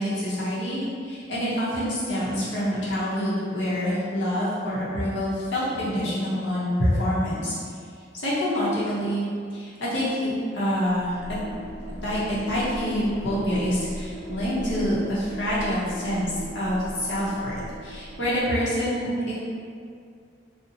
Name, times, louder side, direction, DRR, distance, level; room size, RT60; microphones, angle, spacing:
voice 1, 0.0-7.5 8.1-9.2 9.5-11.2 12.0-19.4, equal, 65° left, -9 dB, 0.7 m, -26 dB
sound 1, 10.8-18.6, right 1 dB, 55° right, 0.6 m, -38 dB
2.7 x 2.0 x 2.7 m, 2.2 s
head